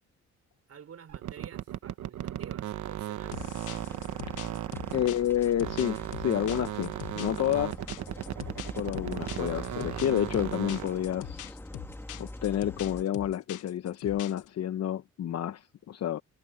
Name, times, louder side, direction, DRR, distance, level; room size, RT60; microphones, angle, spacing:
voice 1, 0.7-3.5, right 8 dB, 55° right, 4.8 m, -49 dB
sound 1, 1.1-5.3 5.6-11.0, right 12 dB, 70° right, 1.2 m, -36 dB
sound 2, 3.2-13.0, left 1 dB, 10° left, 1.6 m, -45 dB
sound 3, 3.3-14.5, left 15 dB, 90° left, 1.2 m, -43 dB
voice 2, 4.9-7.8 8.8-11.6 12.2-16.2, left 11 dB, 55° left, 0.9 m, -29 dB
cardioid pair, 90°, 30 cm